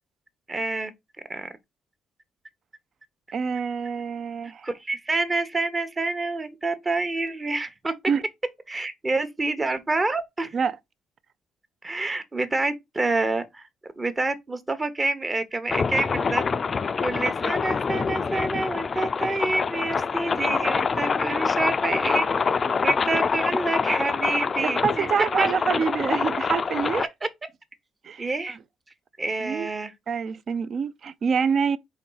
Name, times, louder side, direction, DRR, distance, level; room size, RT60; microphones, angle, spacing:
voice 1, 0.5-0.9 1.3-1.5 4.6-7.9 8.7-10.5 11.8-13.7 14.0-16.4 17.0-25.1 25.4-25.5 27.0-27.1 28.2-28.6 29.2-29.9, right 2 dB, 25° right, 0.9 m, -27 dB
voice 2, 3.3-4.7 8.1-8.2 10.5-10.8 24.6-27.1 28.0-28.3 29.4-29.7 30.1-31.8, right 6 dB, 55° right, 0.5 m, -26 dB
sound 1, 15.7-27.1, left 5 dB, 40° left, 0.3 m, -26 dB
4.2 x 3.1 x 3.8 m
cardioid pair, 90°, 0 cm